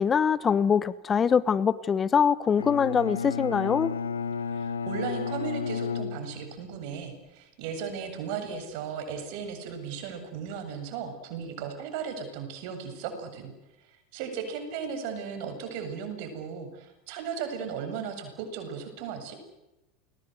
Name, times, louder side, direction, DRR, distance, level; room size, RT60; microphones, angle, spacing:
voice 1, 0.0-3.9, left 7 dB, 30° left, 17 dB, 1.2 m, -23 dB
Bowed string instrument, 2.6-6.8, left 5 dB, 85° left, 1.5 m, -32 dB
voice 2, 4.5-13.5 14.1-19.3, right 6 dB, 60° right, 7 dB, 7.8 m, -36 dB
30.0 x 22.0 x 8.1 m, 0.99 s
hypercardioid pair, 85°, 0 cm